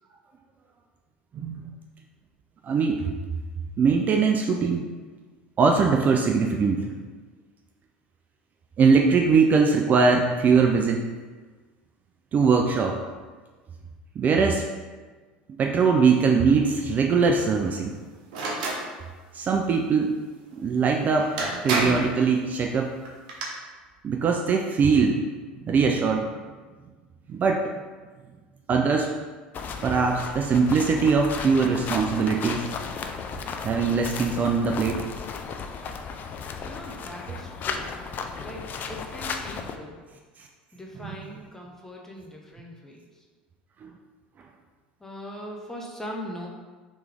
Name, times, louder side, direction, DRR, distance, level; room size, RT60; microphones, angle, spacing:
voice 1, 1.3-1.7 2.6-3.0 3.8-4.9 5.6-6.9 8.8-11.1 12.3-13.0 14.2-14.7 15.6-18.0 19.3-20.1 20.6-21.4 21.6-22.9 24.0-25.2 25.6-26.3 27.3-27.7 28.7-29.1 29.8-32.7 33.6-35.1 43.8-43.9, right 5 dB, 35° right, 3 dB, 0.3 m, -21 dB
sound 1, 18.3-18.8 20.9-21.0 21.4-22.1 23.1-23.4, right 2 dB, 70° right, 0.8 m, -27 dB
sound 2, 29.5-39.8, left 5 dB, 40° left, 0.4 m, -35 dB
voice 2, 36.6-38.0 38.4-40.0 40.7-43.3 45.0-46.5, equal, 10° left, -1 dB, 0.8 m, -40 dB
3.3 x 3.1 x 3.5 m, 1.4 s
hypercardioid pair, 80°, 5 cm